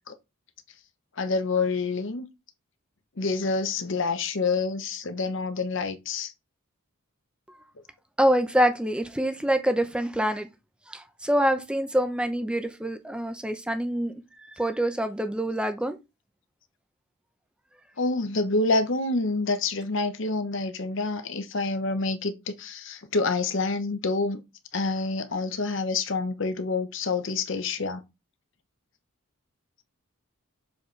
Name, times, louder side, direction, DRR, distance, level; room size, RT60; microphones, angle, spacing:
voice 1, 1.2-2.3 3.2-6.3 18.0-24.4 24.7-28.0, left 3 dB, 60° left, 0.8 m, -27 dB
voice 2, 8.2-10.5 10.9-14.1 14.6-16.0, equal, 5° right, 0.6 m, -25 dB
7.1 x 4.2 x 3.2 m
head